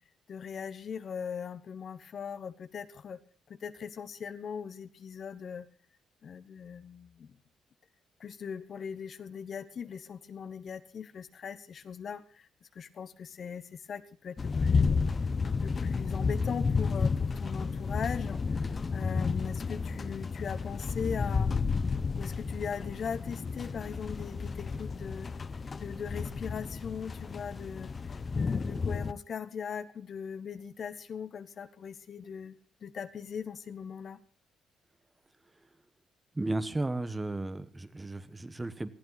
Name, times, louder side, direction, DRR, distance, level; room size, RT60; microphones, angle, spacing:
voice 1, 0.3-3.2 3.5-5.7 6.2-7.3 8.2-14.9 15.6-21.6 22.1-34.2, left 7 dB, 55° left, 12 dB, 1.2 m, -40 dB
sound 1, 14.4-29.1, left 4 dB, 35° left, 0.8 m, -31 dB
voice 2, 36.3-38.9, right 2 dB, 15° right, 12 dB, 1.3 m, -34 dB
20.5 x 14.0 x 4.1 m, 0.42 s
cardioid pair, 90°, 0 cm